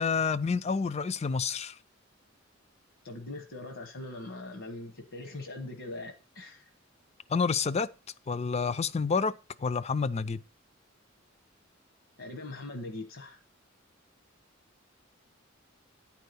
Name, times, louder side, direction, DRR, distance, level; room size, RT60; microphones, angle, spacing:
voice 1, 0.0-1.7 7.3-7.9 8.3-9.3 9.6-10.4, left 5 dB, 30° left, 0.4 m, -28 dB
voice 2, 3.0-6.7 12.2-13.4, left 2 dB, 70° left, 1.2 m, -41 dB
9.8 x 4.7 x 6.8 m
head